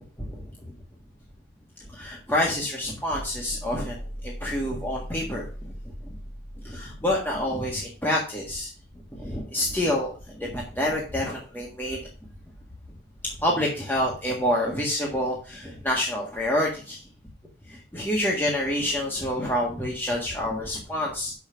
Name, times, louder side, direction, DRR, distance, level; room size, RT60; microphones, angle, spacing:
voice 1, 1.9-5.7 6.0-6.1 6.6-8.7 9.1-12.0 13.4-17.0 17.7-21.3, left 1 dB, 10° left, -3 dB, 1.6 m, -27 dB
sound 1, 3.1-8.1, equal, 40° left, 2.0 m, -40 dB
6.8 x 5.8 x 5.7 m, 0.36 s
head